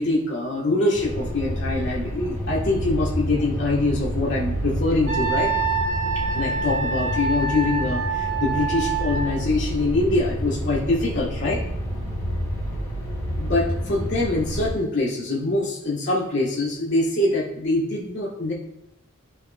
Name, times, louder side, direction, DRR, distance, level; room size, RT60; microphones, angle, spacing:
voice 1, 0.0-5.5 6.3-11.6 13.4-18.5, left 2 dB, 55° left, -7 dB, 2.2 m, -24 dB
sound 1, 0.9-14.7, equal, 15° left, 3.1 m, -29 dB
Wind instrument woodwind instrument, 5.1-9.3, right 4 dB, 50° right, 2.8 m, -26 dB
12.5 x 7.0 x 2.2 m, 0.83 s
head